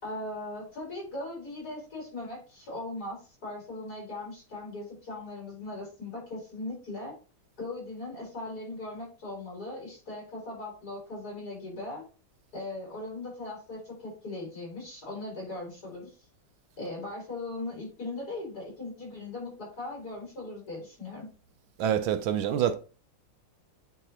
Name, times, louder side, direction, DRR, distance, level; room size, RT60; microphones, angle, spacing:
voice 1, 0.0-7.1 7.6-12.0 12.5-16.2 16.8-21.3, left 2 dB, 45° left, 4.7 m, -39 dB
voice 2, 21.8-22.7, right 9 dB, 75° right, 1.3 m, -26 dB
9.1 x 4.1 x 2.9 m
omnidirectional pair, 2.4 m